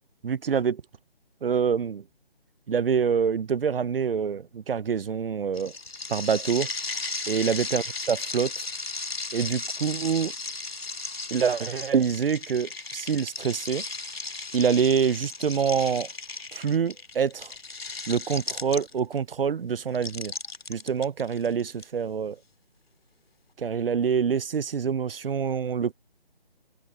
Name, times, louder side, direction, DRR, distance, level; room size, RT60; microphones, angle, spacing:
voice 1, 0.2-0.8 1.4-2.0 2.7-5.7 6.1-6.7 7.3-8.7 9.3-10.3 11.3-13.8 14.5-16.1 16.5-17.5 18.1-20.3 20.7-22.4 23.6-25.9, right 6 dB, 70° right, 0.6 m, -26 dB
sound 1, 5.5-19.2 19.9-21.8, left 3 dB, 75° left, 3.6 m, -36 dB
open air
figure-of-eight pair, 155°, 30 cm